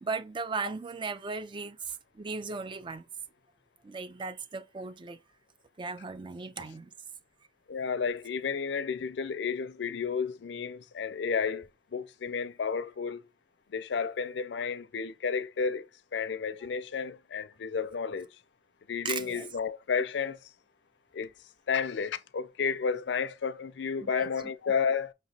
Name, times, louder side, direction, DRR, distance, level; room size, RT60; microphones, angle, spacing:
voice 1, 0.0-3.1 3.8-5.2 5.8-6.9 19.0-19.5 24.0-24.3, right 4 dB, 30° right, 0.4 m, -37 dB
voice 2, 7.7-13.2 13.7-15.9 16.1-18.3 18.9-20.4 21.1-21.3 21.7-25.1, left 6 dB, 75° left, 0.4 m, -32 dB
5.6 x 2.9 x 2.7 m
head